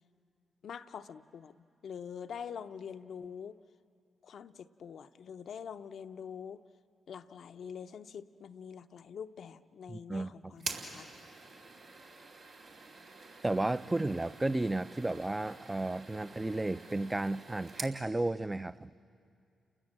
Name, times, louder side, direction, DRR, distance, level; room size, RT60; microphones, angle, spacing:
voice 1, 0.6-3.6 4.2-6.6 7.1-11.3, left 7 dB, 70° left, 9 dB, 0.7 m, -45 dB
voice 2, 9.9-10.6 13.4-18.9, right 2 dB, 20° right, 14 dB, 0.7 m, -33 dB
sound 1, 10.6-18.0, right 3 dB, 70° right, 2.8 m, -47 dB
30.0 x 20.5 x 7.5 m, 2.4 s
hypercardioid pair, 45°, 0 cm